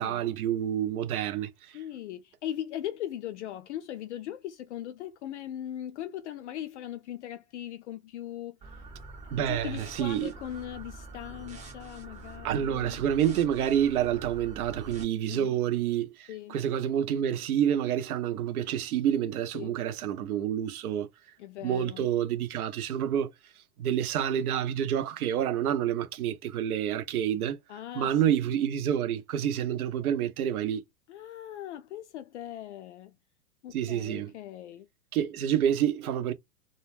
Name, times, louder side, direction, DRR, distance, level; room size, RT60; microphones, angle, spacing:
voice 1, 0.0-1.8 9.3-10.3 12.4-21.1 21.6-23.3 23.8-27.6 27.9-30.8 33.7-34.3 35.1-36.3, right 10 dB, 65° right, 0.7 m, -28 dB
voice 2, 1.7-8.6 9.4-13.0 15.3-15.5 16.3-16.6 19.5-19.8 21.4-22.1 27.7-28.2 28.5-28.6 31.1-33.1 33.6-34.9, left 12 dB, 50° left, 0.4 m, -39 dB
sound 1, 8.6-15.0, right 2 dB, 15° right, 0.8 m, -45 dB
2.3 x 2.1 x 3.2 m
hypercardioid pair, 110°, 48 cm